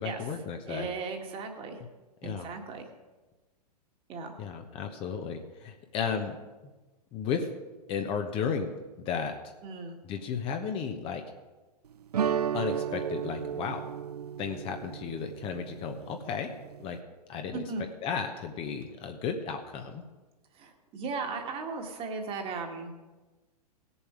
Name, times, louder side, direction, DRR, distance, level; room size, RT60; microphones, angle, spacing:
voice 1, 0.0-0.9 2.2-2.5 4.4-6.4 7.1-7.5 7.9-9.4 10.0-11.2 12.5-13.8 14.4-16.5 16.8-17.0 17.3-17.6 18.0-20.0, left 6 dB, 25° left, 5 dB, 1.0 m, -34 dB
voice 2, 0.7-1.8 2.2-2.8 4.1-4.4 9.6-10.0 17.5-17.8 20.5-22.9, right 4 dB, 25° right, 3 dB, 1.8 m, -36 dB
sound 1, 12.1-17.0, right 8 dB, 70° right, 0.5 m, -34 dB
18.0 x 7.2 x 4.9 m, 1.2 s
figure-of-eight pair, 105°, 21 cm